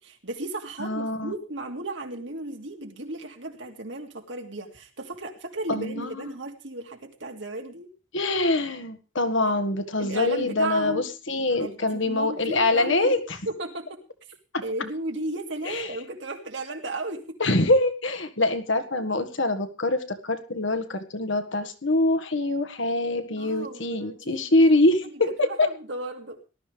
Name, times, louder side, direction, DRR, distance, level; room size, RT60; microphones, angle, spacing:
voice 1, 0.2-7.9 10.0-11.1 11.6-11.8 12.0-13.2 13.5-14.0 14.6-17.4 23.4-24.5 25.0-26.4, right 2 dB, 70° right, 3 dB, 2.7 m, -34 dB
voice 2, 0.8-1.3 5.7-6.2 8.1-13.4 14.5-14.6 15.7-15.9 17.4-25.7, left 2 dB, 80° left, 8 dB, 1.7 m, -24 dB
18.5 x 12.5 x 3.4 m, 0.33 s
head